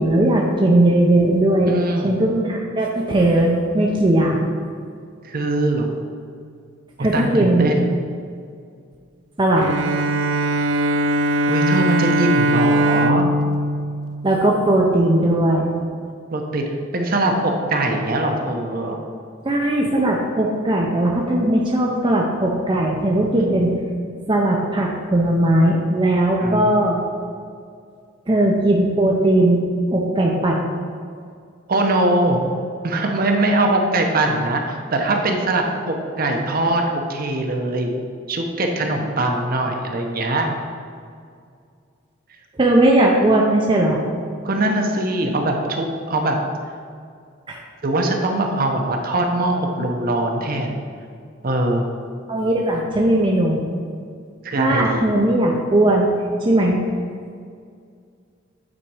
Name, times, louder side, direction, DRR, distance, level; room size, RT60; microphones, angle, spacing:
voice 1, 0.0-1.7 2.0-4.4 7.0-7.7 9.4-9.7 14.2-15.7 19.4-23.7 24.3-27.0 28.3-29.6 29.9-30.7 42.6-44.0 47.5-47.6 52.3-53.6 54.5-56.1 56.4-56.8, right 1 dB, 25° right, -2 dB, 0.6 m, -18 dB
voice 2, 1.7-2.2 5.2-5.9 7.0-7.9 11.5-13.3 16.3-19.0 26.4-26.6 31.7-32.4 32.8-37.9 38.3-40.5 44.4-46.4 47.8-50.8 51.4-51.8 54.4-55.1, right 2 dB, 50° right, 2 dB, 0.9 m, -21 dB
Bowed string instrument, 9.6-15.0, right 1 dB, 70° right, 0.3 m, -21 dB
8.8 x 4.2 x 4.8 m, 2.2 s
head